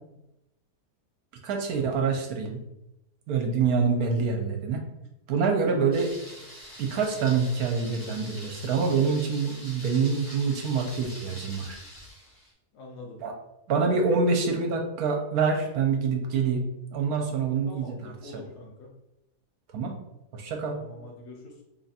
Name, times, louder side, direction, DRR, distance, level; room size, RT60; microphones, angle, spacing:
voice 1, 1.4-2.6 3.3-4.8 5.3-6.1 6.8-11.8 13.2-13.3 13.7-16.6 16.9-18.4 19.7-19.9 20.3-20.8, right 5 dB, 75° right, 2 dB, 1.1 m, -26 dB
Thunder, 5.9-12.5, equal, 55° left, 1.5 m, -45 dB
voice 2, 12.7-13.2 17.7-18.9 20.7-21.5, left 2 dB, 85° left, 0 dB, 1.4 m, -45 dB
3.4 x 2.5 x 4.1 m, 0.89 s
omnidirectional pair, 1.7 m